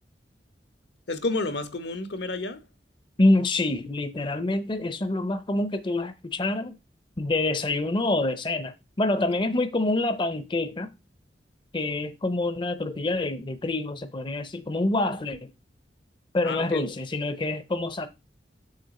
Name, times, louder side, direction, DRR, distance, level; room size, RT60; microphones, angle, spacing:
voice 1, 1.1-2.7 16.4-16.9, left 2 dB, 70° left, 1.0 m, -30 dB
voice 2, 3.2-6.8 7.2-10.9 11.7-15.5 16.3-18.1, left 2 dB, 30° left, 0.6 m, -26 dB
7.4 x 6.6 x 4.2 m
head